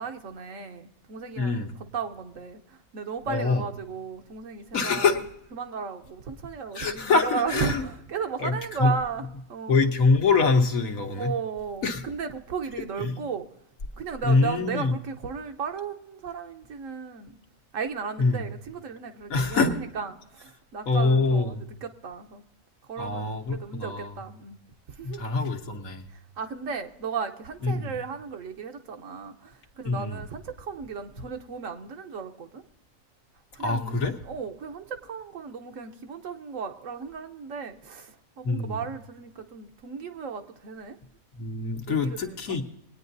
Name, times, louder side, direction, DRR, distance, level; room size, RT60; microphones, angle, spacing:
voice 1, 0.0-5.2 5.5-9.8 11.1-13.5 14.0-17.4 17.7-22.4 22.9-24.6 24.9-25.2 26.1-32.6 33.5-41.0 41.9-42.6, right 6 dB, 70° right, 1.2 m, -35 dB
voice 2, 1.4-1.7 3.3-3.6 4.7-5.2 6.7-7.8 8.4-8.5 8.8-8.9 9.7-11.3 11.8-12.0 13.0-13.2 14.2-15.0 18.2-18.4 19.3-19.7 20.9-21.6 23.0-24.1 25.0-26.1 27.6-27.9 29.8-30.2 33.6-34.1 38.4-38.8 41.4-42.6, left 4 dB, 75° left, 1.6 m, -24 dB
20.5 x 9.4 x 2.6 m
omnidirectional pair, 1.4 m